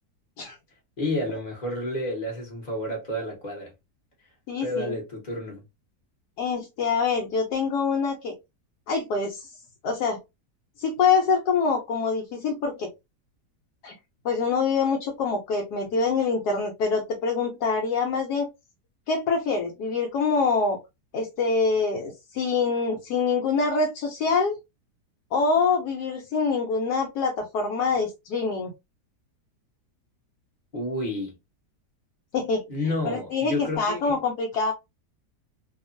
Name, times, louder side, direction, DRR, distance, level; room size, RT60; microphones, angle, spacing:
voice 1, 1.0-3.7 4.6-5.6 30.7-31.4 32.7-34.2, left 1 dB, 30° left, 0.9 m, -30 dB
voice 2, 4.5-5.0 6.4-8.3 8.9-9.5 9.8-10.2 10.8-12.9 13.8-13.9 14.2-18.5 19.1-20.8 21.1-24.6 25.3-28.7 32.3-32.6 33.0-34.7, left 4 dB, 75° left, 1.1 m, -25 dB
2.8 x 2.3 x 2.5 m
omnidirectional pair, 1.8 m